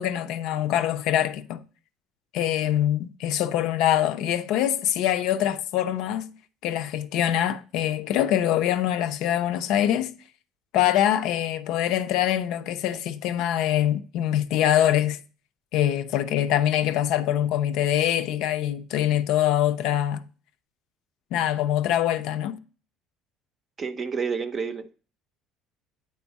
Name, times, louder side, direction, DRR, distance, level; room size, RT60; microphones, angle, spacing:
voice 1, 0.0-1.6 2.3-6.3 6.6-10.1 10.7-15.2 15.7-20.2 21.3-22.6, left 11 dB, 65° left, 0.5 m, -24 dB
voice 2, 23.8-24.9, right 5 dB, 25° right, 0.6 m, -29 dB
9.3 x 3.5 x 4.0 m
cardioid pair, 155°, 0 cm